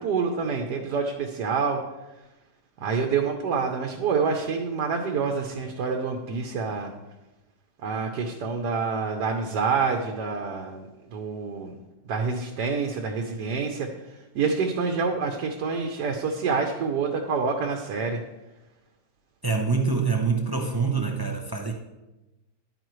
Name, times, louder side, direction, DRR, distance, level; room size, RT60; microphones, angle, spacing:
voice 1, 0.0-1.8 2.8-6.9 7.8-11.8 12.1-18.2, right 5 dB, 80° right, 3 dB, 1.4 m, -27 dB
voice 2, 19.4-21.7, right 4 dB, 40° right, 1 dB, 0.3 m, -25 dB
11.0 x 9.1 x 3.1 m, 1.0 s
omnidirectional pair, 1.8 m